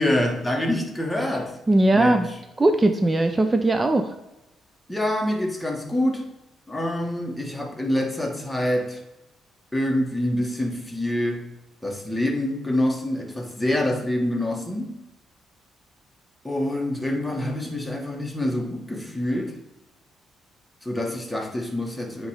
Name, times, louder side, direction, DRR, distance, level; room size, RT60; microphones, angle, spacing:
voice 1, 0.0-1.6 1.9-2.3 4.9-6.2 6.7-9.0 9.7-11.5 11.8-15.0 16.4-19.6 20.8-22.3, left 1 dB, 5° left, 0 dB, 1.5 m, -26 dB
voice 2, 1.7-2.3 2.6-4.1, right 2 dB, 20° right, 6 dB, 0.5 m, -19 dB
9.1 x 3.2 x 4.9 m, 0.92 s
cardioid pair, 90°, 0 cm